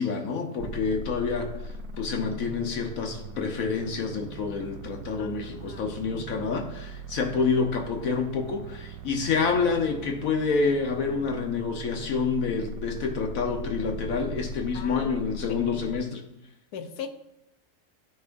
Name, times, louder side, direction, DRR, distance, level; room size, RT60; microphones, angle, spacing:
voice 1, 0.0-16.2, left 5 dB, 65° left, 3 dB, 1.3 m, -28 dB
sound 1, 0.6-16.0, right 2 dB, 75° right, 1.2 m, -40 dB
voice 2, 5.0-6.3 14.7-15.2 15.5-15.6 16.7-17.3, left 6 dB, 85° left, 9 dB, 1.3 m, -40 dB
13.5 x 4.8 x 2.6 m, 0.91 s
omnidirectional pair, 1.6 m